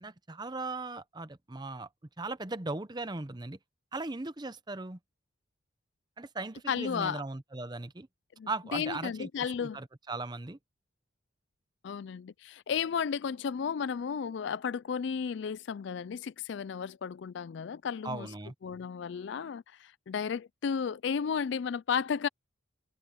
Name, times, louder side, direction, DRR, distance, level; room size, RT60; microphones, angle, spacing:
voice 1, 0.0-1.9 2.2-3.6 3.9-5.0 6.2-8.1 8.5-10.6 18.0-18.5, right 3 dB, 20° right, 0.7 m, -38 dB
voice 2, 6.7-7.2 8.4-9.8 11.8-18.3 18.6-22.3, left 6 dB, 55° left, 0.3 m, -33 dB
head